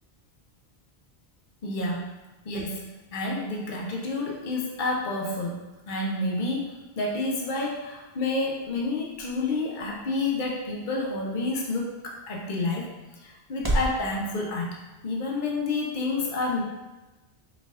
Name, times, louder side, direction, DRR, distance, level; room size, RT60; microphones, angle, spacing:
voice 1, 1.6-2.1 2.4-5.6 5.9-14.8 15.0-16.6, left 2 dB, 55° left, -1 dB, 0.9 m, -29 dB
sound 1, 7.7-14.0, right 1 dB, 25° right, 0.6 m, -36 dB
4.4 x 4.0 x 2.5 m, 1.1 s
omnidirectional pair, 1.0 m